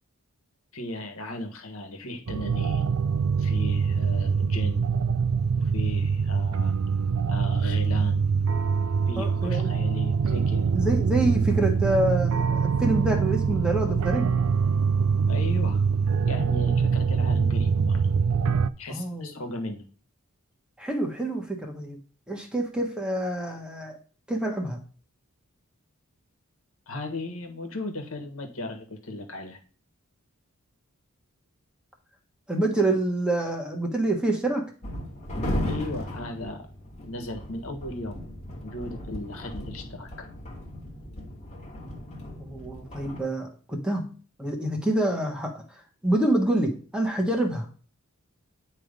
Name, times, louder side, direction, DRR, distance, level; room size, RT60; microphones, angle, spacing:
voice 1, 0.7-2.9 3.4-4.9 5.6-6.7 7.3-8.2 9.1-10.7 15.3-15.8 16.2-18.1 18.8-19.8 26.9-29.6 35.6-36.7 37.0-38.2 38.6-40.3, left 2 dB, 65° left, 4 dB, 1.5 m, -36 dB
sound 1, 2.3-18.7, right 5 dB, 85° right, 0.4 m, -24 dB
voice 2, 9.2-9.7 10.7-14.3 18.9-19.3 20.8-22.0 22.3-24.0 24.3-24.8 32.5-34.7 42.4-44.1 44.4-45.6 46.0-47.7, right 1 dB, 5° right, 2 dB, 1.2 m, -27 dB
sound 2, 34.8-43.2, equal, 30° left, 1.5 m, -36 dB
9.7 x 3.2 x 5.2 m, 0.40 s
head